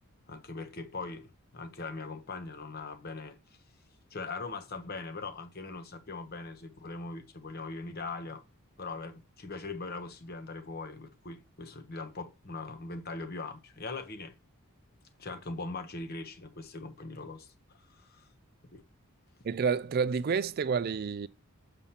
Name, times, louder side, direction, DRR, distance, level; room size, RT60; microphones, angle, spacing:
voice 1, 0.3-3.4 4.1-8.4 8.8-14.3 15.2-17.5 17.9-18.3 18.7-18.8, left 3 dB, 45° left, 1.0 m, -41 dB
voice 2, 19.4-21.3, right 5 dB, 45° right, 0.3 m, -29 dB
7.1 x 6.9 x 2.9 m
head